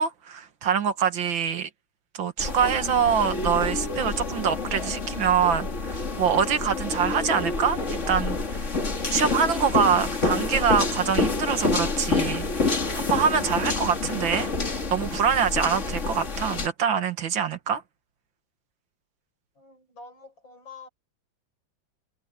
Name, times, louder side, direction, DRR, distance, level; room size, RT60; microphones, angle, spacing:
voice 1, 0.0-1.7 2.1-14.5 14.9-17.8, right 7 dB, 75° right, 2.3 m, -25 dB
sound 1, 2.4-16.7, left 3 dB, 35° left, 2.6 m, -28 dB
voice 2, 19.6-20.9, left 4 dB, 70° left, 7.1 m, -46 dB
omnidirectional pair, 2.2 m